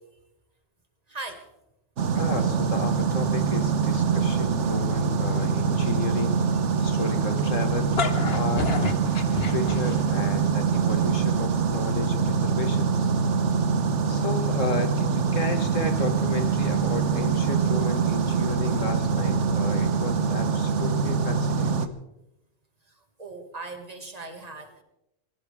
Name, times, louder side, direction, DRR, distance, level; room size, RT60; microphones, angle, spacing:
voice 1, 1.1-1.5 13.7-14.0 22.9-24.8, right 3 dB, 30° right, 4 dB, 2.2 m, -40 dB
sound 1, 2.0-21.9, right 5 dB, 65° right, 1.3 m, -24 dB
voice 2, 2.1-6.4 6.8-8.0 8.3-8.7 9.2-13.1 14.1-22.0, left 3 dB, 75° left, 6 dB, 2.2 m, -33 dB
sound 2, 7.7-10.3, left 5 dB, 50° left, 1.4 m, -30 dB
24.5 x 15.5 x 3.6 m, 0.86 s
omnidirectional pair, 1.3 m